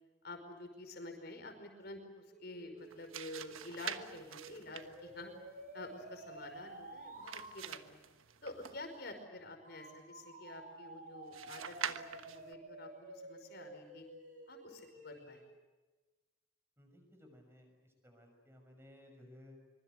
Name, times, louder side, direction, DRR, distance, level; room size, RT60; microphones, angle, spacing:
voice 1, 0.2-5.3 5.7-8.0 8.4-14.1 14.5-15.4, left 2 dB, 50° left, 5 dB, 5.4 m, -49 dB
sound 1, 2.2-7.5 9.6-15.5, right 1 dB, 40° right, 7.6 m, -52 dB
sound 2, 2.8-9.1 11.3-12.5, right 8 dB, 80° right, 1.3 m, -46 dB
voice 2, 16.8-19.6, left 1 dB, 10° right, 4 dB, 6.3 m, -59 dB
25.0 x 24.0 x 8.1 m, 1.2 s
head